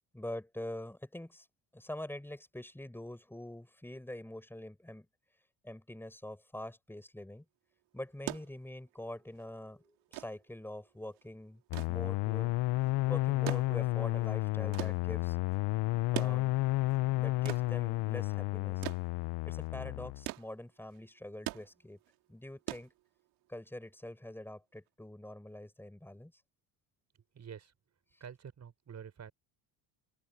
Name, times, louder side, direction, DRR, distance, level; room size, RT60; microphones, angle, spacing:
voice 1, 0.1-1.5 1.7-5.1 5.6-7.4 7.9-11.6 11.9-12.5 13.1-15.4 16.1-16.6 17.1-18.8 19.5-22.0 22.3-22.9 23.5-26.3, left 1 dB, 5° left, 7.9 m, -44 dB
sound 1, 8.0-23.5 24.8-24.9, right 22 dB, 80° right, 2.6 m, -45 dB
sound 2, 11.7-20.3, left 21 dB, 60° left, 0.9 m, -32 dB
voice 2, 27.3-27.7 28.2-29.3, right 7 dB, 35° right, 4.8 m, -47 dB
open air
cardioid pair, 125°, 48 cm